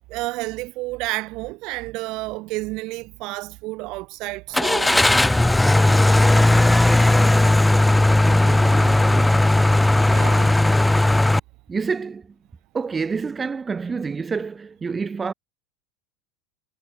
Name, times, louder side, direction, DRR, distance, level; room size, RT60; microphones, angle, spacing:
voice 1, 0.1-5.1 10.1-10.6, right 22 dB, 50° right, 2.6 m, -30 dB
Car / Engine starting, 4.5-11.4, left 1 dB, 5° left, 0.3 m, -16 dB
voice 2, 8.2-9.4 11.7-12.3 12.7-15.3, right 5 dB, 20° right, 1.8 m, -28 dB
figure-of-eight pair, 75°, 0 cm